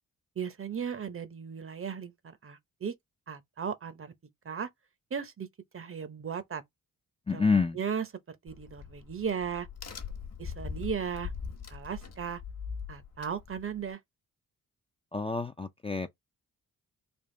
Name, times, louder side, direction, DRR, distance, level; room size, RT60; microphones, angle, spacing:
voice 1, 0.4-2.9 3.3-4.1 4.4-4.7 5.1-5.5 5.7-6.6 7.3-7.5 7.7-9.7 10.4-11.3 11.7-12.4 12.9-14.0, right 7 dB, 35° right, 0.7 m, -36 dB
voice 2, 7.3-7.8 15.1-16.1, left 4 dB, 15° left, 0.4 m, -28 dB
Crack, 8.5-13.9, left 6 dB, 45° left, 1.1 m, -41 dB
3.5 x 2.4 x 3.6 m
cardioid pair, 80°, 36 cm